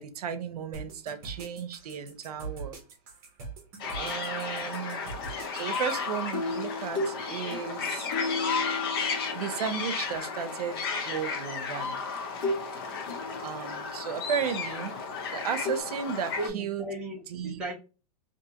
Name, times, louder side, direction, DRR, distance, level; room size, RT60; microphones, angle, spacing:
voice 1, 0.0-2.8 4.0-5.1 5.5-8.1 9.3-12.0 13.4-14.9 15.3-16.8 17.3-17.6, right 7 dB, 80° right, 10 dB, 0.6 m, -34 dB
sound 1, 0.7-6.0, right 4 dB, 30° right, 0.9 m, -42 dB
sound 2, 3.8-16.5, left 5 dB, 40° left, 0.6 m, -34 dB
sound 3, 6.3-9.9 11.3-11.4 12.4-12.7 13.0-13.9 15.6-15.8, left 2 dB, 55° left, 1.1 m, -34 dB
voice 2, 16.4-17.7, right 1 dB, 5° right, -4 dB, 0.5 m, -36 dB
3.6 x 2.7 x 2.8 m, 0.32 s
supercardioid pair, 175°, 19 cm